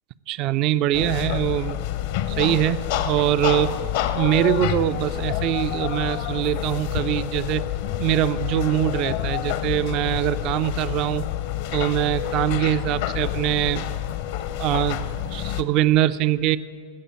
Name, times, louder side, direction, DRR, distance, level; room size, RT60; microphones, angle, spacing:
voice 1, 0.3-1.8 2.3-3.7 4.1-7.6 8.0-11.2 11.7-13.9 14.6-16.6, right 13 dB, 40° right, 15 dB, 0.3 m, -23 dB
sound 1, 0.9-15.6, left 12 dB, 50° left, 0.7 m, -28 dB
16.5 x 6.6 x 9.0 m, 2.3 s
figure-of-eight pair, 90°, 0 cm